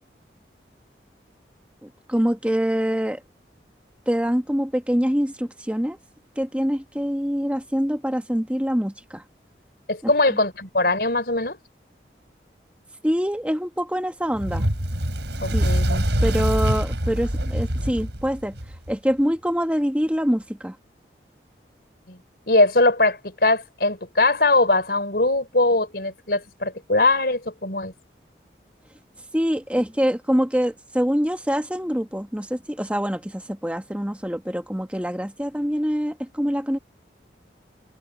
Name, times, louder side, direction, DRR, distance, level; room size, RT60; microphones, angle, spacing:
voice 1, 1.8-3.2 4.1-6.0 6.4-9.2 10.0-10.4 13.0-14.7 15.5-15.7 16.2-18.6 18.9-20.7 29.3-36.8, equal, 5° right, 1.5 m, -25 dB
voice 2, 9.9-11.6 15.4-16.2 22.1-22.2 22.5-27.9, left 2 dB, 60° left, 4.7 m, -21 dB
Fire, 14.3-18.9, right 1 dB, 85° right, 4.8 m, -24 dB
head